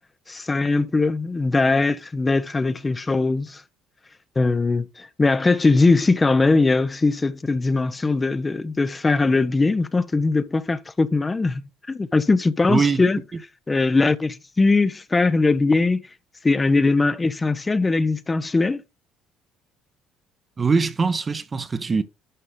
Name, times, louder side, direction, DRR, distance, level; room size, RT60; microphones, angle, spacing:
voice 1, 0.3-3.6 4.4-13.2 13.7-16.0 16.4-18.8, left 3 dB, 25° left, 0.9 m, -20 dB
voice 2, 12.7-13.1 20.6-22.0, right 4 dB, 30° right, 1.1 m, -22 dB
11.0 x 5.4 x 3.8 m
hypercardioid pair, 55°, 0 cm